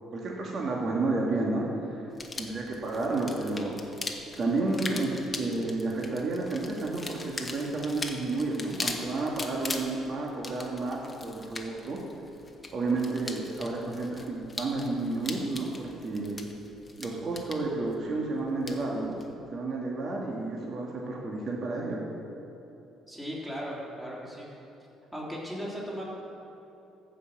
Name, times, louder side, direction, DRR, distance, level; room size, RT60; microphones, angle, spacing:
voice 1, 0.1-3.8 4.4-12.0 12.7-16.4 17.0-19.1 19.5-22.0, right 2 dB, 45° right, -3 dB, 1.7 m, -31 dB
sound 1, 2.1-19.3, left 3 dB, 20° left, 1.1 m, -41 dB
voice 2, 23.1-24.5 25.1-26.0, equal, 10° right, -5 dB, 3.1 m, -37 dB
14.5 x 5.5 x 7.2 m, 2.9 s
cardioid pair, 115°, 0 cm